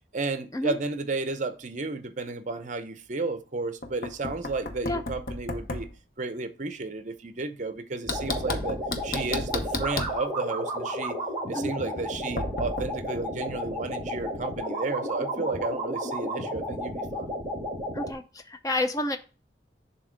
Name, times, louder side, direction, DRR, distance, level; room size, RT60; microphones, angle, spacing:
voice 1, 0.1-5.9 6.2-11.2 11.5-17.4, right 3 dB, 40° right, 0.6 m, -33 dB
Knock, 3.8-5.9 8.1-10.2 12.4-12.9, left 2 dB, 50° left, 0.7 m, -33 dB
sound 1, 8.0-18.1, equal, 10° right, 1.7 m, -33 dB
voice 2, 17.9-19.2, left 1 dB, 20° left, 0.5 m, -29 dB
7.0 x 2.8 x 5.0 m
head